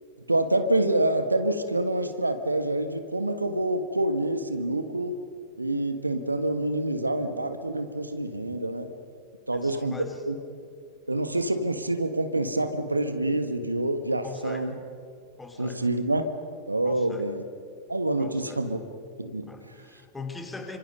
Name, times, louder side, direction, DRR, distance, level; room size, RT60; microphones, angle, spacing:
voice 1, 0.3-5.2 5.6-8.9 9.5-10.3 11.1-14.8 15.6-16.3 16.7-17.4 17.9-18.8 19.2-19.5, right 1 dB, 85° right, 9 dB, 1.6 m, -27 dB
voice 2, 9.5-10.2 14.2-14.7 15.4-15.8 16.8-17.3 18.2-18.6 19.5-20.8, left 3 dB, 10° left, 4 dB, 3.5 m, -41 dB
30.0 x 26.0 x 5.4 m, 2.2 s
figure-of-eight pair, 90°, 0 cm